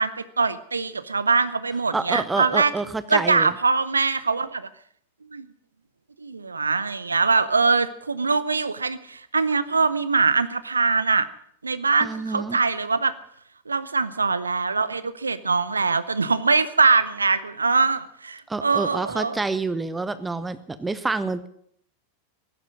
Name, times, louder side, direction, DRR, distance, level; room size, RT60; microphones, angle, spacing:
voice 1, 0.0-2.7 3.1-4.7 5.3-5.5 6.2-11.3 11.6-13.1 13.7-19.4, right 4 dB, 75° right, 15 dB, 0.8 m, -22 dB
voice 2, 1.9-3.5 12.0-12.6 18.5-21.5, right 3 dB, 10° right, 14 dB, 0.8 m, -28 dB
15.5 x 11.5 x 7.6 m, 0.65 s
figure-of-eight pair, 90°, 0 cm